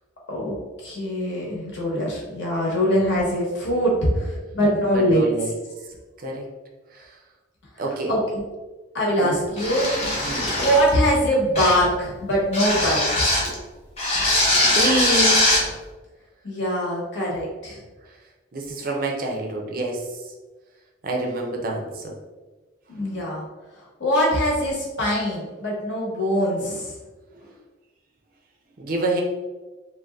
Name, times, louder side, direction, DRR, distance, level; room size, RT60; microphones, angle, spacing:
voice 1, 0.3-5.2 7.7-8.4 8.9-10.0 10.6-13.3 16.4-17.8 22.9-23.4 23.7-26.9, equal, 65° left, -4 dB, 1.0 m, -23 dB
voice 2, 4.9-5.5 6.2-6.4 6.9-7.2 7.8-8.1 9.2-9.3 10.2-10.6 14.7-15.5 18.5-20.2 21.0-22.1 28.8-29.2, right 2 dB, 45° right, 0 dB, 0.4 m, -27 dB
sound 1, 9.6-10.9 11.5-11.9 12.5-13.5 14.0-15.7, left 1 dB, 30° left, 0.7 m, -21 dB
2.6 x 2.2 x 3.3 m, 1.2 s
head